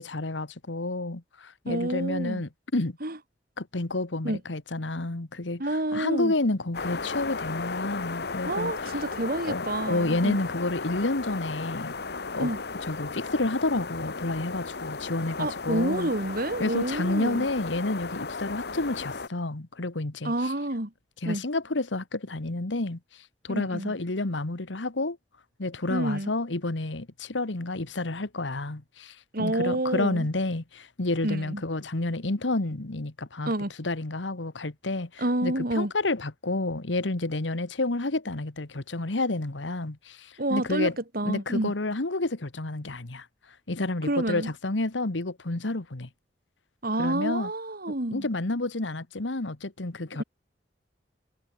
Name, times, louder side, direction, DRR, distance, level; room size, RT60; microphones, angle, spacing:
voice 1, 0.0-3.0 3.6-5.6 5.9-8.9 9.5-11.9 12.3-12.5 12.8-16.1 16.6-20.5 21.2-23.0 23.4-25.2 25.6-33.5 33.8-40.9 41.3-43.3 43.7-46.1 47.0-47.5 48.1-50.2, left 2 dB, 90° left, 1.6 m, -30 dB
voice 2, 1.7-2.4 3.0-3.2 4.2-4.4 5.6-6.3 8.4-10.4 12.4-12.6 15.4-17.5 20.2-20.9 21.3-21.4 23.5-23.9 25.9-26.3 29.3-30.3 31.2-31.6 33.5-33.7 35.2-35.9 40.4-41.7 44.0-44.5 46.8-48.3, right 1 dB, 55° right, 3.4 m, -29 dB
sound 1, 6.7-19.3, left 4 dB, 60° left, 1.3 m, -35 dB
head